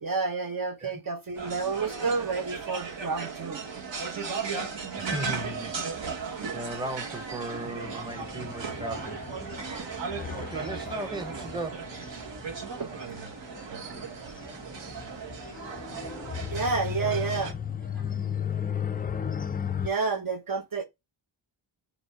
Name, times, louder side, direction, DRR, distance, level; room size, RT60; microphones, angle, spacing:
voice 1, 0.0-3.6 12.8-12.9 15.8-15.9 16.5-17.5 17.9-18.1 19.8-20.9, right 4 dB, 45° right, 0.7 m, -30 dB
sound 1, 1.3-17.5, right 5 dB, 60° right, 1.2 m, -36 dB
voice 2, 5.0-9.3 9.6-9.7 10.4-11.9 16.4-16.6 17.0-17.2, right 1 dB, 10° right, 0.8 m, -37 dB
sound 2, 7.6-19.9, left 8 dB, 20° left, 0.3 m, -36 dB
5.1 x 2.1 x 4.5 m
cardioid pair, 80°, 49 cm